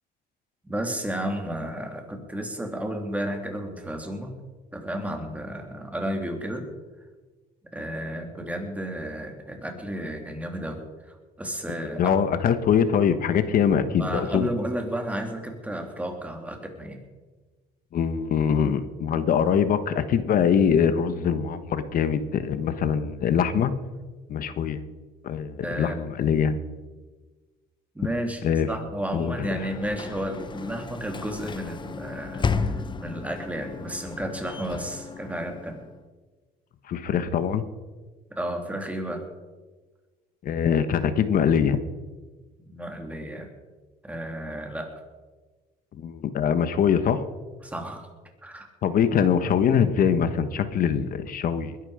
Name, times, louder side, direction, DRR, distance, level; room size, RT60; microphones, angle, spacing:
voice 1, 0.6-4.3 4.7-6.7 7.7-12.1 14.0-17.0 25.6-26.0 27.9-35.8 38.3-39.3 42.7-43.5 44.0-44.9 47.6-48.1 48.4-48.7, right 1 dB, 10° right, 3 dB, 3.1 m, -32 dB
voice 2, 12.0-14.5 17.9-23.7 24.3-24.8 25.2-26.6 28.4-28.7 29.1-29.5 36.9-37.6 40.4-41.8 45.9-47.2 48.8-51.7, left 7 dB, 55° left, 11 dB, 1.4 m, -23 dB
Sliding door / Slam, 29.0-36.0, left 5 dB, 25° left, 0.9 m, -34 dB
21.0 x 11.5 x 5.1 m, 1.3 s
cardioid pair, 110°, 17 cm